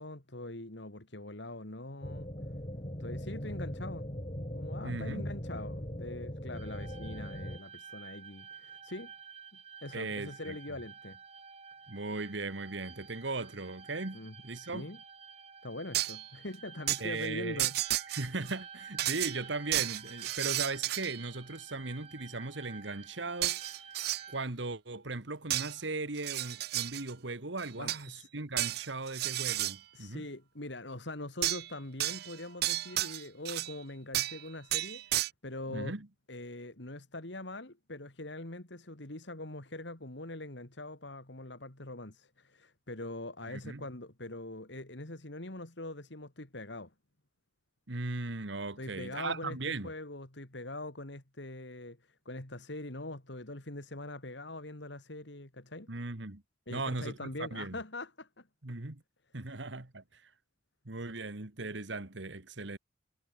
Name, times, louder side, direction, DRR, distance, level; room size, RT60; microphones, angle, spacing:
voice 1, 0.0-2.3 3.0-4.1 4.5-9.1 9.8-11.2 14.1-15.0 15.6-17.8 18.1-18.2 27.8-28.3 29.9-36.0 36.3-46.9 48.8-55.9 56.7-58.5 59.4-59.6, left 2 dB, 65° left, 2.9 m, -43 dB
sound 1, 2.0-7.6, equal, 30° left, 4.0 m, -40 dB
voice 2, 4.8-5.3 9.9-10.6 11.9-14.9 17.0-17.6 18.1-23.6 24.3-30.3 35.7-36.1 43.5-43.9 47.9-49.9 55.9-56.4 56.7-57.8 58.6-59.0 59.3-60.3 60.9-62.8, right 3 dB, 70° right, 1.8 m, -38 dB
sound 2, 6.5-24.5, right 6 dB, 30° right, 5.5 m, -51 dB
sound 3, 15.9-16.3 16.9-17.0 17.6-18.5 19.0-21.3 23.4-24.2 25.5-25.7 26.2-27.1 27.6-28.1 28.6-29.8 31.4-31.7 32.0-33.8 34.1-34.4 34.7-35.3, right 15 dB, 55° right, 0.4 m, -32 dB
head